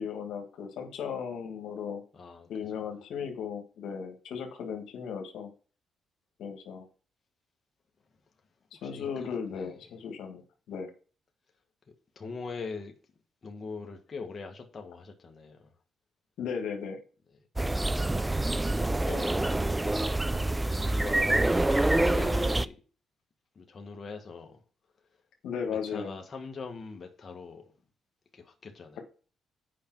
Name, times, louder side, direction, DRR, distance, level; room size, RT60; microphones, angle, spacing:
voice 1, 0.0-2.0 2.5-5.5 6.4-6.9 8.8-10.4 10.7-10.9 16.4-17.0 25.4-26.2, left 6 dB, 80° left, 1.6 m, -36 dB
voice 2, 2.1-2.8 8.7-9.8 12.1-12.9 13.4-15.7 17.7-18.1 18.7-19.7 20.8-22.8 23.5-24.6 25.7-27.7 28.3-29.0, left 4 dB, 40° left, 1.5 m, -42 dB
sound 1, 17.6-22.7, right 2 dB, 15° right, 0.4 m, -26 dB
8.5 x 5.2 x 6.0 m
cardioid pair, 90°, 0 cm